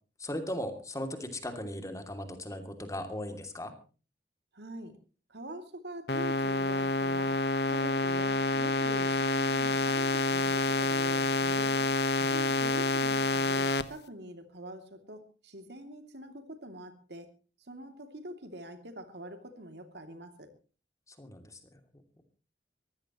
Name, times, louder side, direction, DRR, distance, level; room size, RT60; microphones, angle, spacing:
voice 1, 0.2-3.7 21.1-21.6, left 1 dB, 20° left, 6 dB, 2.7 m, -38 dB
voice 2, 4.5-4.9 5.3-7.4 7.6-11.8 12.3-17.3 17.6-20.5, right 1 dB, 70° right, 7 dB, 2.8 m, -45 dB
sound 1, 6.1-13.8, left 2 dB, 65° left, 1.3 m, -28 dB
23.0 x 16.0 x 3.1 m, 0.36 s
head